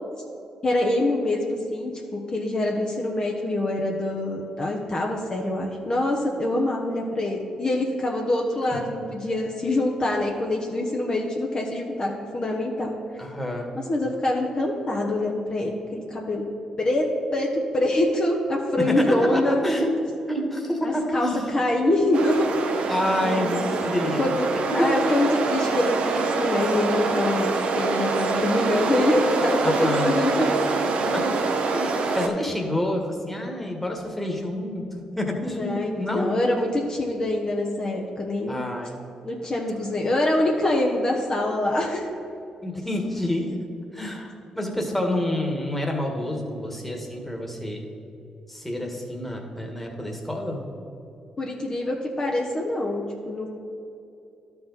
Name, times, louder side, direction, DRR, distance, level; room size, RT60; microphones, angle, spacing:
voice 1, 0.6-12.9 13.9-16.4 16.8-17.1 17.3-19.6 20.8-22.5 23.2-23.7 24.2-24.5 24.7-30.5 35.6-38.7 39.2-42.1 51.4-53.5, left 1 dB, 40° left, -1 dB, 1.0 m, -25 dB
voice 2, 13.2-13.7 18.8-19.9 20.3-21.4 22.9-25.0 29.6-30.1 30.9-31.3 31.7-36.3 38.5-38.9 42.6-43.6 43.9-47.8 48.5-50.6, left 1 dB, 10° left, 1 dB, 1.6 m, -28 dB
sound 1, 22.1-32.3, right 4 dB, 70° right, 0.8 m, -25 dB
12.0 x 4.7 x 4.1 m, 2.7 s
supercardioid pair, 60°, 2 cm